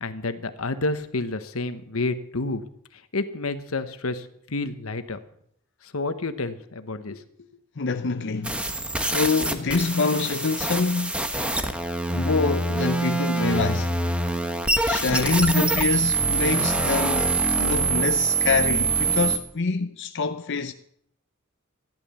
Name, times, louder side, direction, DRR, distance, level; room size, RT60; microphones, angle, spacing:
voice 1, 0.0-2.6 3.1-5.2 5.8-7.2, left 2 dB, 85° left, 1.2 m, -29 dB
voice 2, 7.8-8.7 9.0-11.3 12.1-14.0 14.8-20.7, left 4 dB, 60° left, 0.7 m, -25 dB
sound 1, 8.4-19.4, right 3 dB, 5° right, 1.2 m, -24 dB
15.0 x 11.0 x 6.9 m
head